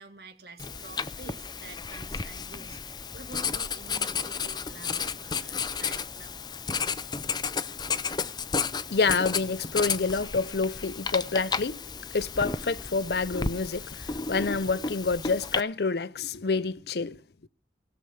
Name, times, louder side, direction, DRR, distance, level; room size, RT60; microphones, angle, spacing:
voice 1, 0.0-6.4, right 2 dB, 60° right, 2.1 m, -48 dB
Writing, 0.6-15.6, left 5 dB, 25° left, 0.6 m, -33 dB
voice 2, 8.7-11.8 12.1-17.5, left 4 dB, 60° left, 0.6 m, -28 dB
17.0 x 6.9 x 7.9 m
head